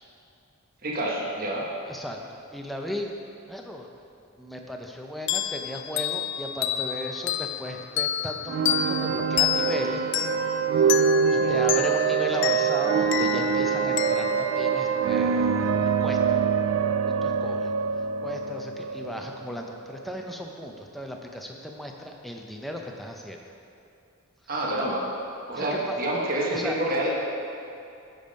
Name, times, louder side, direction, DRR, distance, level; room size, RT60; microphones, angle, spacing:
voice 1, 0.8-1.7 11.4-11.6 24.5-25.1 25.5-27.1, right 1 dB, 40° right, -3 dB, 1.2 m, -28 dB
voice 2, 1.8-3.1 3.5-3.9 4.4-10.0 10.8-10.9 11.3-15.7 16.0-16.4 17.2-17.7 18.2-23.4 25.5-26.0 26.5-26.8, equal, ahead, 1 dB, 0.5 m, -36 dB
sound 1, 5.3-15.6, left 10 dB, 55° left, 0.3 m, -30 dB
sound 2, 8.5-20.1, right 6 dB, 65° right, 0.3 m, -25 dB
9.7 x 5.3 x 5.2 m, 2.6 s
head